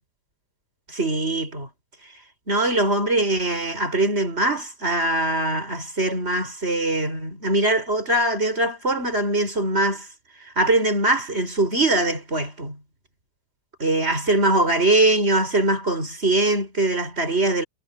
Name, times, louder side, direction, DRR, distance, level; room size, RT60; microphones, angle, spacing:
voice 1, 0.9-1.7 2.5-10.1 10.6-12.8 13.8-17.6, right 2 dB, 20° right, 7.6 m, -22 dB
omnidirectional pair, 3.4 m